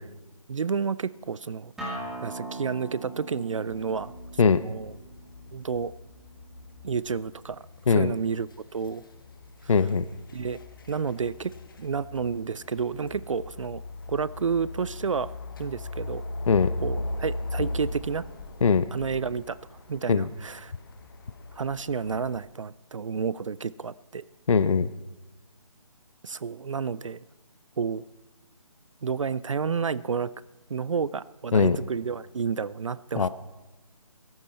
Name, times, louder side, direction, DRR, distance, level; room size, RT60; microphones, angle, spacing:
voice 1, 0.5-1.7 2.2-4.1 4.4-4.9 5.5-5.9 6.8-7.6 7.9-9.0 9.6-9.7 10.3-10.6 10.9-13.8 14.1-15.3 15.6-16.2 16.8-18.3 18.9-19.6 19.9-20.7 21.5-24.3 26.2-27.2 27.8-28.0 29.0-30.3 30.7-33.3, right 6 dB, 60° right, 19 dB, 0.4 m, -30 dB
Acoustic guitar, 1.8-7.0, right 2 dB, ahead, 1.8 m, -41 dB
sound 1, 3.7-22.4, left 2 dB, 35° left, 1.2 m, -39 dB
voice 2, 9.7-10.0 16.5-16.7 18.6-18.9 20.1-20.3 24.5-24.9 31.5-31.8 33.2-33.3, left 5 dB, 60° left, 14 dB, 0.7 m, -20 dB
17.0 x 14.0 x 4.3 m, 1.1 s
hypercardioid pair, 170°, 19 cm